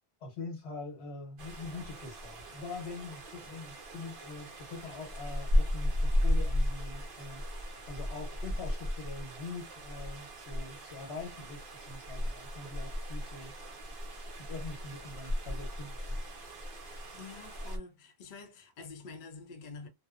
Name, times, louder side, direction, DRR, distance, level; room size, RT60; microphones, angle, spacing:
voice 1, 0.2-7.4 7.9-13.5 14.4-16.2, left 3 dB, 85° left, 1.2 m, -44 dB
sound 1, 1.4-17.8, left 1 dB, 60° right, 0.9 m, -35 dB
voice 2, 17.1-19.9, left 4 dB, 55° left, 0.7 m, -47 dB
2.7 x 2.0 x 2.3 m
omnidirectional pair, 1.1 m